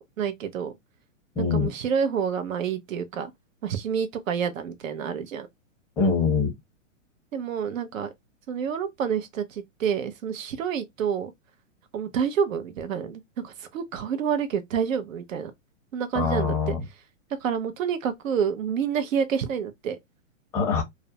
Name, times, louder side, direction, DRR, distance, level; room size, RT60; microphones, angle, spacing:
voice 1, 0.2-0.7 1.4-3.3 3.6-5.5 7.3-8.1 8.5-11.3 11.9-15.5 15.9-16.8 17.4-20.0, right 7 dB, 80° right, 0.7 m, -28 dB
voice 2, 1.4-1.7 6.0-6.5 16.1-16.8 20.5-20.8, left 5 dB, 10° left, 0.5 m, -23 dB
2.4 x 2.0 x 2.7 m
hypercardioid pair, 145°, 39 cm